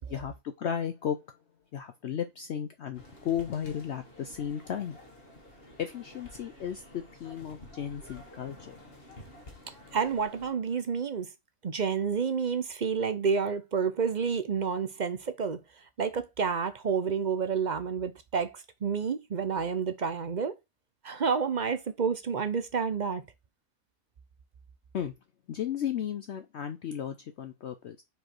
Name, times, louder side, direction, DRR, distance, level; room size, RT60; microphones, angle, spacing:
voice 1, 0.1-1.2 1.7-5.0 5.8-8.7 24.9-25.1 25.5-28.0, left 9 dB, 60° left, 0.8 m, -34 dB
sound 1, 2.9-10.5, left 1 dB, 45° left, 1.9 m, -51 dB
voice 2, 9.9-11.3 11.6-20.5 21.0-23.2, right 6 dB, 45° right, 0.7 m, -29 dB
5.0 x 4.7 x 4.5 m
omnidirectional pair, 1.5 m